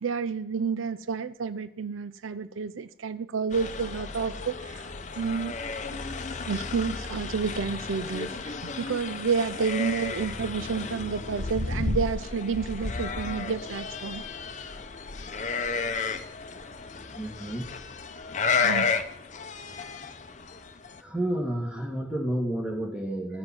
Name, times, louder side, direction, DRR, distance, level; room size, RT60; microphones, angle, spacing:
voice 1, 0.0-4.9 5.2-5.6 6.4-14.2 18.6-19.0, right 5 dB, 85° right, 0.6 m, -30 dB
sound 1, 3.5-21.0, left 4 dB, 35° left, 0.8 m, -33 dB
voice 2, 17.1-17.7 18.6-18.7 21.0-23.4, right 1 dB, 5° right, 2.3 m, -31 dB
14.5 x 7.6 x 6.1 m
head